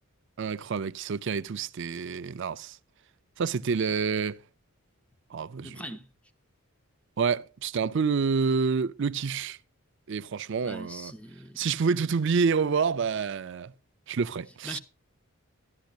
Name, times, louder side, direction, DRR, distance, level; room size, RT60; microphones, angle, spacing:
voice 1, 0.4-2.8 3.4-4.4 5.3-5.8 7.2-9.6 10.1-11.1 11.6-13.7 14.1-14.8, right 5 dB, 55° right, 0.4 m, -28 dB
voice 2, 5.6-6.1 10.6-11.7 14.6-14.8, equal, 5° left, 0.8 m, -41 dB
13.0 x 11.5 x 2.4 m
head